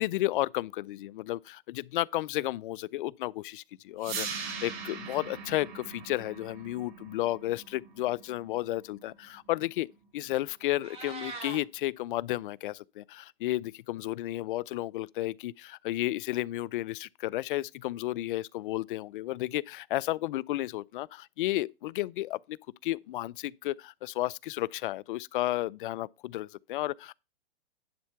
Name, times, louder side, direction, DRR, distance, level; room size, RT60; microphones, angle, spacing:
voice 1, 0.0-9.9 10.1-22.6 22.8-27.1, left 16 dB, 55° left, 0.4 m, -32 dB
sound 1, 4.0-10.0, right 5 dB, 40° right, 2.5 m, -41 dB
Meow, 10.6-11.6, right 3 dB, 20° right, 2.3 m, -41 dB
10.5 x 4.3 x 5.7 m
hypercardioid pair, 130°, 31 cm